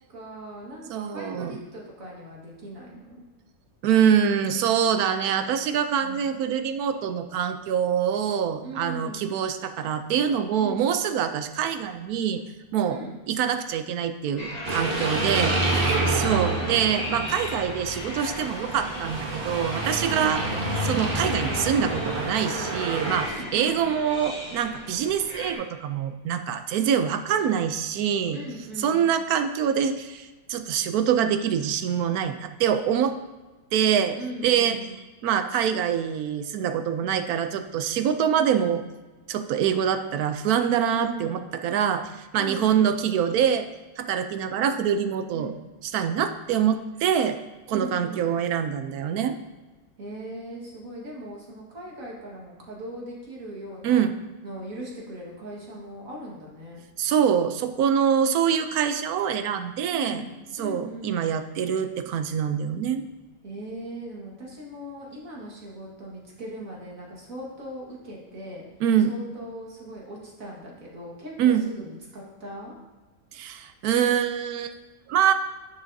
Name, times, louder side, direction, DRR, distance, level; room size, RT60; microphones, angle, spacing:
voice 1, 0.1-3.2 6.0-6.2 8.6-9.2 10.6-10.9 12.9-13.2 15.0-16.8 23.2-23.8 28.3-29.1 34.2-35.0 38.2-38.5 40.9-41.3 42.3-43.0 45.3-45.6 47.7-48.3 50.0-54.1 54.4-56.8 59.9-60.3 60.6-61.2 63.4-68.6 69.1-72.8, right 1 dB, 60° right, -3 dB, 2.1 m, -39 dB
voice 2, 0.9-1.6 3.8-12.4 12.7-13.0 13.3-20.4 20.8-28.4 28.8-33.2 33.7-34.2 34.4-34.8 35.2-38.8 39.3-43.7 44.0-45.5 45.9-47.4 47.7-49.4 53.8-54.1 57.0-60.2 60.6-63.0 68.8-69.1 71.4-71.7 73.3-74.7 75.1-75.3, right 8 dB, 75° right, 9 dB, 1.1 m, -25 dB
sound 1, 14.4-25.5, left 1 dB, 30° left, 1.1 m, -38 dB
sound 2, 14.6-23.3, right 2 dB, 40° right, 1.2 m, -28 dB
10.5 x 7.1 x 2.7 m, 1.2 s
omnidirectional pair, 1.6 m